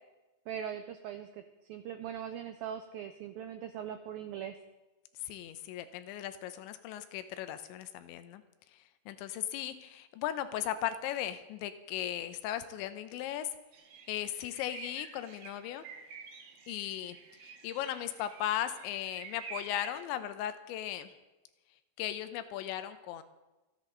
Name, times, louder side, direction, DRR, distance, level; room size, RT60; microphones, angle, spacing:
voice 1, 0.5-1.4 1.7-4.6, right 9 dB, 85° right, 8 dB, 2.0 m, -40 dB
voice 2, 5.2-8.4 8.7-13.5 14.1-15.8 16.7-21.1 22.0-23.2, left 11 dB, 90° left, 10 dB, 3.2 m, -37 dB
sound 1, 13.7-20.0, right 5 dB, 70° right, 3.4 m, -49 dB
29.5 x 10.5 x 3.9 m, 1.1 s
omnidirectional pair, 5.1 m